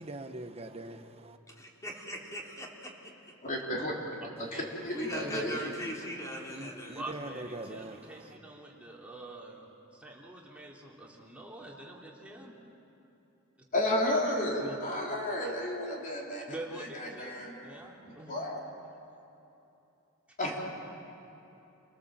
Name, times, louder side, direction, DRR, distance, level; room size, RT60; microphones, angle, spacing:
voice 1, 0.0-1.4 5.2-5.7 6.5-8.2, right 2 dB, 30° right, 1.1 m, -42 dB
voice 2, 1.5-3.1 4.9-7.0, equal, 15° left, 3.2 m, -40 dB
voice 3, 3.4-3.9 4.4-5.6 13.7-16.4 16.7-17.6 18.1-18.6 20.4-20.6, left 1 dB, 40° left, 3.8 m, -32 dB
voice 4, 6.9-12.5 14.6-14.8 16.5-17.3 17.6-18.4, right 2 dB, 5° right, 3.0 m, -45 dB
29.5 x 18.5 x 7.5 m
head